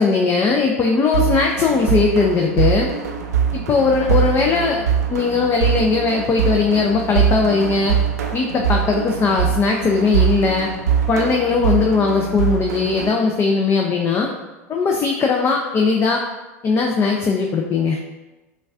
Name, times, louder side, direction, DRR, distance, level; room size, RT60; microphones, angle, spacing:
voice 1, 0.0-2.9 3.5-8.0 8.3-10.7 11.1-14.3 14.7-16.2 16.6-18.0, left 4 dB, 30° left, 1 dB, 0.4 m, -19 dB
sound 1, 1.1-13.1, right 8 dB, 85° right, 0.4 m, -22 dB
5.2 x 2.3 x 2.4 m, 1.1 s
hypercardioid pair, 95°, 8 cm